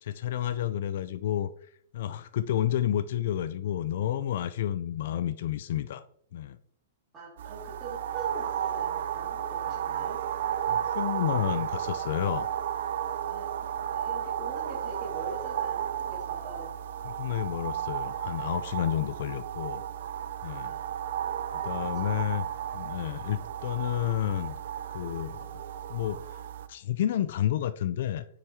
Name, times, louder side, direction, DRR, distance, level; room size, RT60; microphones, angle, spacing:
voice 1, 0.0-1.5 1.9-6.0 6.3-6.6 10.7-12.5 17.0-19.8 20.4-20.7 21.5-22.5 22.7-24.6 24.9-25.6 25.9-26.4 26.7-28.3, left 11 dB, 50° left, 14 dB, 0.4 m, -30 dB
voice 2, 7.1-10.2 13.2-16.7 18.8-18.9 20.6-20.9 21.8-22.2, right 3 dB, 15° right, -5 dB, 3.3 m, -43 dB
sound 1, 7.4-26.7, right 10 dB, 55° right, 0.7 m, -33 dB
9.2 x 5.6 x 4.7 m, 0.64 s
hypercardioid pair, 175°, 0 cm